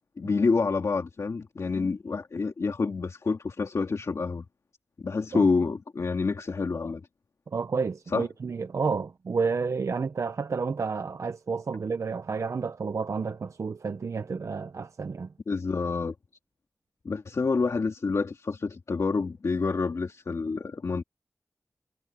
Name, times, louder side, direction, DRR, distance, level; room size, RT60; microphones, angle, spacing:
voice 1, 0.2-4.4 5.0-7.1 8.1-8.3 15.5-16.1 17.0-21.0, left 4 dB, 85° left, 2.3 m, -28 dB
voice 2, 7.5-15.3, right 5 dB, 85° right, 0.6 m, -30 dB
wide cardioid pair, 75°, 5 cm